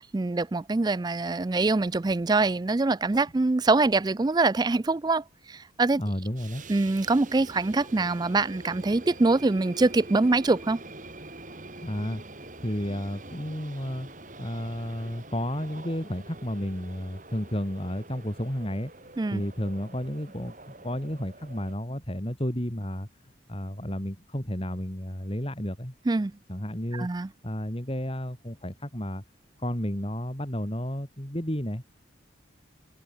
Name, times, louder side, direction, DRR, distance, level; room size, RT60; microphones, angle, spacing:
voice 1, 0.0-6.0 6.7-10.8 19.2-19.4 26.1-26.4 26.9-27.3, right 3 dB, 20° right, 0.4 m, -24 dB
voice 2, 6.0-6.6 11.8-12.2 12.6-14.1 14.4-18.9 19.3-23.1 23.5-25.9 26.5-27.1 27.4-29.2 29.6-31.8, equal, 30° left, 3.9 m, -32 dB
sound 1, 6.2-21.7, right 2 dB, 40° right, 4.7 m, -45 dB
head